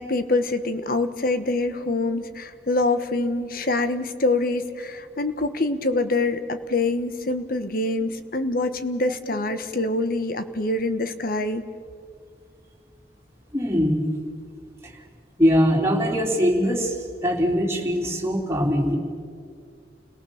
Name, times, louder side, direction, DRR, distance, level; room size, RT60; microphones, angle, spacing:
voice 1, 0.0-11.6, left 2 dB, 55° left, 9 dB, 1.3 m, -25 dB
voice 2, 13.5-14.0 15.4-16.9 17.2-19.0, equal, 15° right, -2 dB, 3.5 m, -21 dB
29.0 x 18.5 x 7.2 m, 2.2 s
head